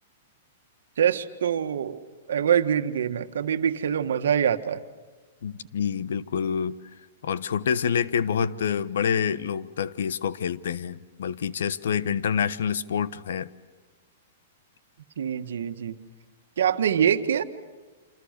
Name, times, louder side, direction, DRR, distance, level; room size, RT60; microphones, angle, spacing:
voice 1, 1.0-2.0 2.3-4.8 15.2-15.9 16.6-17.4, right 8 dB, 80° right, 8 dB, 1.6 m, -24 dB
voice 2, 5.4-6.8 7.2-13.5, left 7 dB, 80° left, 16 dB, 1.1 m, -27 dB
27.5 x 26.5 x 6.7 m, 1.3 s
hypercardioid pair, 155°, 0 cm